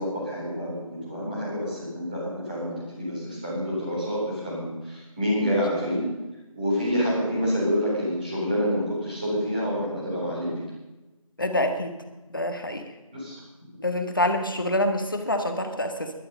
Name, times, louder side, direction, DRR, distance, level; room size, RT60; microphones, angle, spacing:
voice 1, 0.0-6.1 6.5-10.6 13.1-13.4, equal, 15° right, -7 dB, 4.0 m, -27 dB
voice 2, 11.4-11.9 12.3-12.8 13.8-16.1, left 1 dB, 40° left, 5 dB, 1.6 m, -26 dB
17.0 x 12.0 x 5.3 m, 1.1 s
figure-of-eight pair, 180°, 18 cm